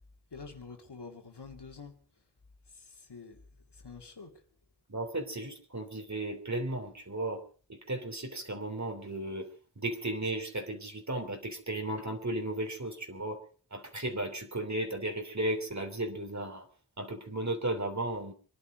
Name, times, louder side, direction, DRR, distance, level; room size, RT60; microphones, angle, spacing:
voice 1, 0.3-2.0 2.7-3.4 3.7-4.4, left 4 dB, 90° left, 2.4 m, -47 dB
voice 2, 4.9-7.4 7.7-9.5 9.8-13.4 13.7-16.6 17.0-18.3, right 1 dB, 45° right, 3.2 m, -35 dB
26.5 x 11.0 x 5.0 m
wide cardioid pair, 65°, 39 cm